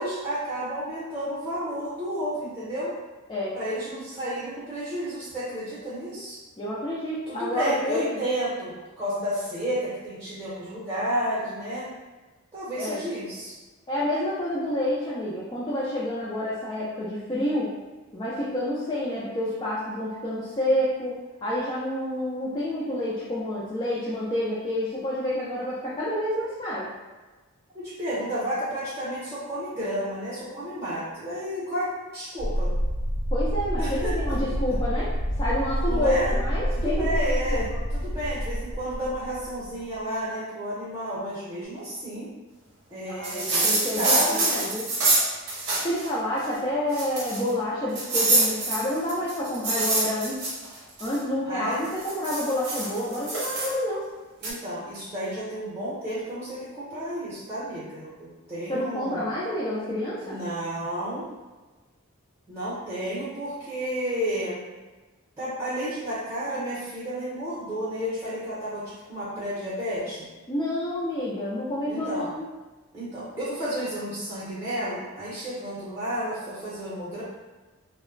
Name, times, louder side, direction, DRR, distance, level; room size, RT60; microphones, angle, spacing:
voice 1, 0.0-2.9 3.5-6.4 7.3-11.9 12.5-13.5 27.7-32.7 33.8-34.1 35.8-36.3 36.7-42.3 42.9-44.7 51.5-51.8 54.4-59.2 60.2-61.3 62.5-64.6 65.4-70.3 71.9-72.3 72.9-77.2, equal, 10° right, -10 dB, 0.8 m, -31 dB
voice 2, 6.6-8.1 12.8-13.0 13.9-17.7 18.1-26.9 33.3-35.1 35.4-37.3 43.1-44.8 45.8-50.4 51.0-54.0 58.7-60.4 70.5-72.5, left 1 dB, 20° left, -9 dB, 0.4 m, -28 dB
sound 1, 32.4-40.0, equal, 85° left, 0.9 m, -28 dB
sound 2, 43.2-46.1 46.4-46.5 46.9-47.5 48.0-51.2 51.8-53.7 54.4-54.5, right 2 dB, 50° right, 0.7 m, -25 dB
2.2 x 2.0 x 3.7 m, 1.2 s
head